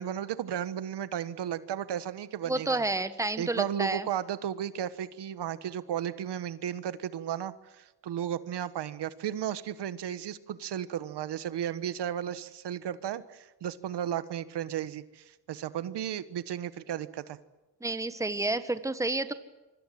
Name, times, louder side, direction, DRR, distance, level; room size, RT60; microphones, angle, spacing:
voice 1, 0.0-2.8 3.4-17.4, right 10 dB, 70° right, 14 dB, 1.4 m, -34 dB
voice 2, 2.5-4.1 17.8-19.3, right 2 dB, 5° right, 11 dB, 1.5 m, -30 dB
26.5 x 24.5 x 7.8 m, 1.1 s
cardioid pair, 120°, 43 cm